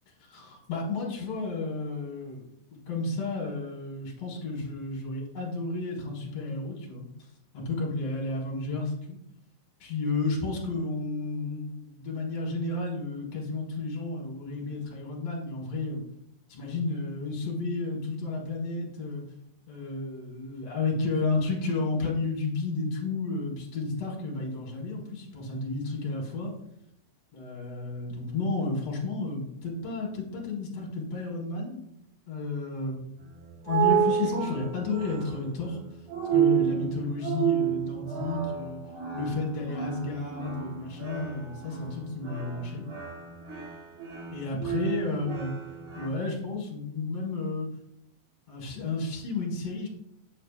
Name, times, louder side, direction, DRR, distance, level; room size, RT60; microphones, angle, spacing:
voice 1, 0.2-2.4 2.9-7.1 7.5-9.2 9.8-16.0 16.5-19.2 19.7-26.5 27.3-31.8 32.3-33.1 33.6-35.8 36.3-38.8 39.1-42.8 44.3-45.5 46.0-47.7 48.5-49.9, left 3 dB, 55° left, -1 dB, 2.4 m, -32 dB
sound 1, 33.2-46.1, right 9 dB, 75° right, 3.5 m, -30 dB
7.7 x 6.4 x 2.5 m, 0.78 s
omnidirectional pair, 3.8 m